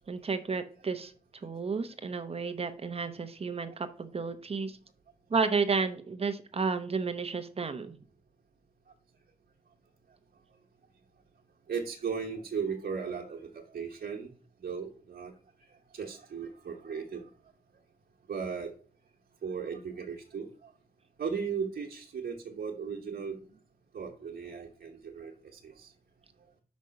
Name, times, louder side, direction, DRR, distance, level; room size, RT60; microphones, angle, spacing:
voice 1, 0.0-4.8 5.3-7.9, right 4 dB, 40° right, 9 dB, 0.8 m, -32 dB
voice 2, 11.7-14.3 14.6-15.3 15.9-17.3 18.3-18.7 19.4-20.5 21.2-23.3 23.9-25.9, right 6 dB, 80° right, -1 dB, 1.2 m, -36 dB
5.8 x 5.3 x 6.3 m, 0.42 s
wide cardioid pair, 150°, 16 cm